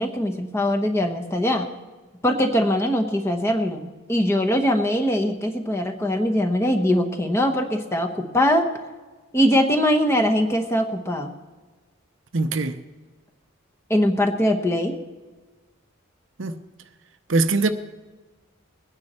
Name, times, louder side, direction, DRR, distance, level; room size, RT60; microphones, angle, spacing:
voice 1, 0.0-1.7 2.2-8.7 9.3-11.3 13.9-15.0, equal, 15° left, 1.0 m, -22 dB
voice 2, 12.3-12.8 16.4-16.6 17.3-17.7, right 3 dB, 60° right, 0.7 m, -22 dB
21.0 x 9.7 x 4.3 m
head